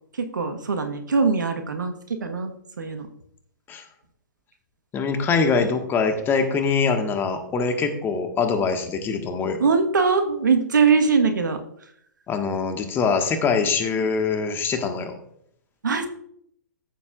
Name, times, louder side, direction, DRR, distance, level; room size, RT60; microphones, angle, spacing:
voice 1, 0.2-2.5 2.8-3.1 9.6-11.6 15.8-16.1, right 5 dB, 75° right, 7 dB, 1.3 m, -21 dB
voice 2, 4.9-9.6 12.3-15.1, left 5 dB, 20° left, 5 dB, 1.5 m, -23 dB
14.5 x 7.2 x 2.4 m, 0.69 s
figure-of-eight pair, 115°, 10 cm